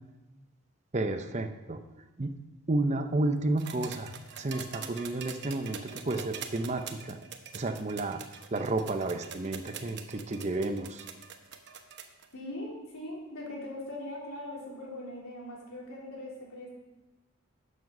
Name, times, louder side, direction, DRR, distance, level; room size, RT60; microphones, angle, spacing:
voice 1, 0.9-1.8 2.2-2.3 2.7-7.2 7.5-8.2 8.5-11.0, right 2 dB, 30° right, 8 dB, 0.6 m, -31 dB
sound 1, 3.6-12.3 13.5-13.6, right 7 dB, 55° right, 0.9 m, -44 dB
voice 2, 12.3-16.7, left 1 dB, 85° left, -3 dB, 3.7 m, -41 dB
12.5 x 7.3 x 5.3 m, 1.1 s
head